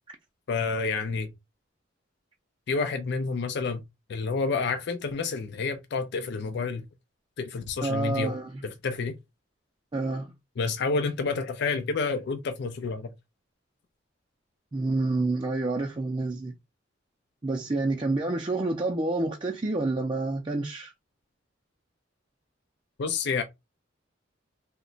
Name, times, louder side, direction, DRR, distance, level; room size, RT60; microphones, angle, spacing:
voice 1, 0.5-1.3 2.7-3.8 4.1-6.9 7.4-8.4 8.6-9.1 10.6-13.1 23.0-23.4, left 4 dB, 60° left, 0.4 m, -29 dB
voice 2, 7.8-8.6 9.9-10.3 14.7-16.5 17.4-20.9, right 2 dB, 25° right, 0.4 m, -28 dB
2.8 x 2.1 x 3.8 m
head